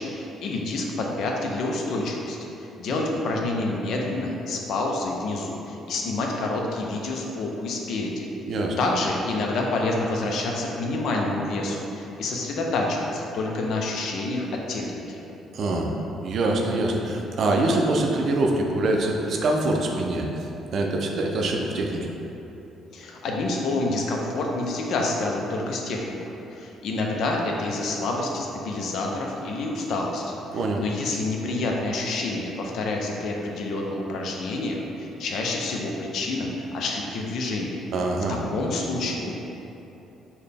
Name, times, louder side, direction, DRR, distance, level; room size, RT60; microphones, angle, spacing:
voice 1, 0.0-2.5 2.8-8.3 8.8-15.2 22.9-37.8 38.3-39.3, left 2 dB, 65° left, 0 dB, 0.5 m, -28 dB
voice 2, 8.5-8.8 15.5-15.9 16.2-20.3 20.7-22.1 30.5-30.8 37.9-38.4, right 2 dB, 60° right, 1 dB, 0.4 m, -24 dB
4.0 x 2.2 x 3.4 m, 3.0 s
cardioid pair, 100°, 0 cm